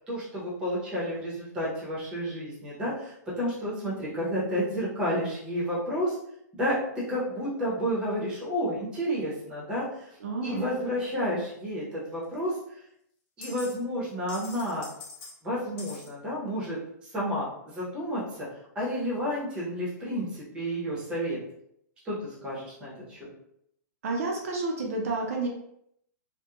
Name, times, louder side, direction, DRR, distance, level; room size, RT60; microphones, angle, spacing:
voice 1, 0.1-6.2 6.6-10.1 10.4-12.5 13.4-14.8 15.4-16.8 17.1-17.5 17.7-18.5 18.7-21.4 22.0-22.2 22.4-23.2, equal, 10° right, -6 dB, 0.6 m, -31 dB
voice 2, 10.2-10.6 24.0-25.5, right 3 dB, 50° right, 0 dB, 0.4 m, -30 dB
sound 1, 12.4-12.5 13.4-13.8 14.0-15.3 15.8-16.1, left 3 dB, 35° left, 0.6 m, -44 dB
2.9 x 2.0 x 2.3 m, 0.72 s
hypercardioid pair, 175°, 10 cm